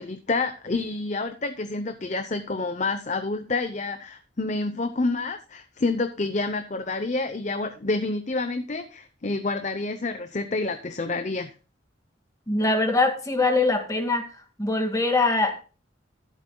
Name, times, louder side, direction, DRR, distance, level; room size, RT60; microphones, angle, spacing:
voice 1, 0.0-11.5, left 3 dB, 40° left, 9 dB, 0.8 m, -28 dB
voice 2, 12.5-14.3 14.6-15.6, left 2 dB, 15° left, 4 dB, 2.0 m, -23 dB
14.0 x 11.5 x 2.3 m, 0.34 s
head